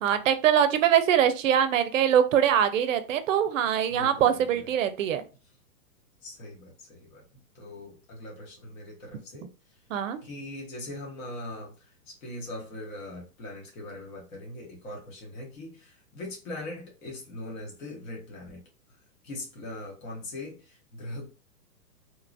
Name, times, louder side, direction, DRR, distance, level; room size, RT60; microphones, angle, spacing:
voice 1, 0.0-5.2 9.9-10.2, right 9 dB, 55° right, 12 dB, 0.5 m, -23 dB
voice 2, 3.9-4.7 6.2-7.3 7.5-9.8 10.2-18.6 19.2-21.3, left 1 dB, 60° left, -1 dB, 1.3 m, -41 dB
2.9 x 2.3 x 2.5 m, 0.32 s
hypercardioid pair, 150°, 46 cm